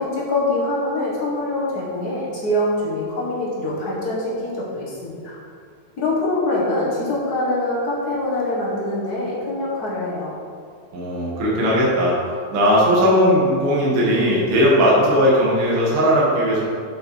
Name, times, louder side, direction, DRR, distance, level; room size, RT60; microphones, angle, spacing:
voice 1, 0.0-5.4 6.0-10.4, left 1 dB, 40° left, -5 dB, 1.6 m, -24 dB
voice 2, 10.9-12.2 12.5-16.6, equal, 50° right, -5 dB, 2.3 m, -17 dB
7.4 x 6.3 x 4.7 m, 2.1 s
omnidirectional pair, 3.5 m